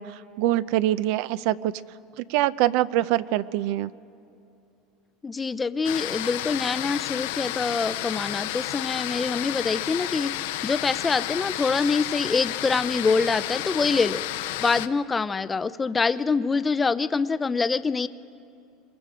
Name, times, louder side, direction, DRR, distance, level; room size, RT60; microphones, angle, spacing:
voice 1, 0.0-1.7 2.2-3.9, right 14 dB, 65° right, 17 dB, 0.5 m, -24 dB
voice 2, 5.2-14.2 14.6-18.1, left 4 dB, 15° left, 14 dB, 0.5 m, -25 dB
sound 1, 5.8-14.9, left 15 dB, 80° left, 0.7 m, -31 dB
26.0 x 22.0 x 5.0 m, 2.6 s
supercardioid pair, 130°, 0 cm